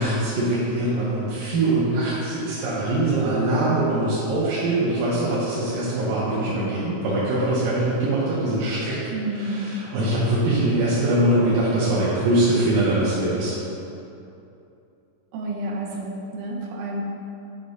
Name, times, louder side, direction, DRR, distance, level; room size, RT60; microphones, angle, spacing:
voice 1, 0.0-9.0 9.3-13.5, right 1 dB, 90° right, -9 dB, 2.9 m, -22 dB
voice 2, 9.1-9.8 15.3-17.0, right 2 dB, 75° right, -1 dB, 2.3 m, -30 dB
8.8 x 5.2 x 4.0 m, 2.8 s
omnidirectional pair, 3.9 m